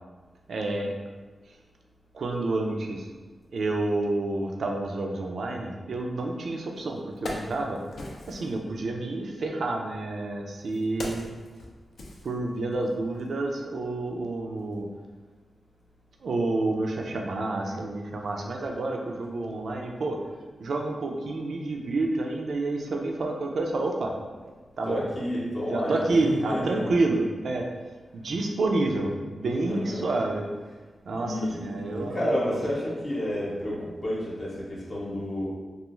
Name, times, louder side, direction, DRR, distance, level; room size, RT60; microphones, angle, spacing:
voice 1, 0.5-0.9 2.1-3.1 3.5-7.8 8.3-11.3 12.2-14.9 16.2-20.2 20.6-24.1 24.8-25.0 25.7-27.7 28.1-30.4 31.1-32.6, right 2 dB, 75° right, 1 dB, 0.3 m, -29 dB
Wood, 6.4-6.5 6.9-8.6 9.5-12.9 13.2-13.3, left 1 dB, 75° left, 0.4 m, -40 dB
voice 2, 24.8-27.0 29.7-30.0 31.1-35.4, left 1 dB, 50° left, -7 dB, 0.8 m, -31 dB
2.3 x 2.3 x 3.0 m, 1.3 s
wide cardioid pair, 85°, 0 cm